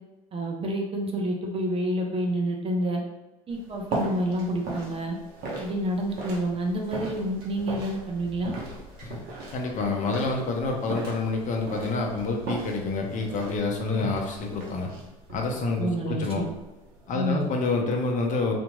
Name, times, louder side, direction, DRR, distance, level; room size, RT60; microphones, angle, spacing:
voice 1, 0.3-3.0 3.5-5.2 5.6-8.5 15.8-16.5 17.1-17.4, right 1 dB, 30° right, 1 dB, 0.6 m, -28 dB
sound 1, 3.5-17.5, right 2 dB, 55° right, 0.9 m, -38 dB
voice 2, 9.5-14.9 15.3-16.4 17.1-18.5, left 3 dB, 40° left, 1 dB, 0.7 m, -28 dB
2.8 x 2.6 x 2.2 m, 1.1 s
hypercardioid pair, 80°, 19 cm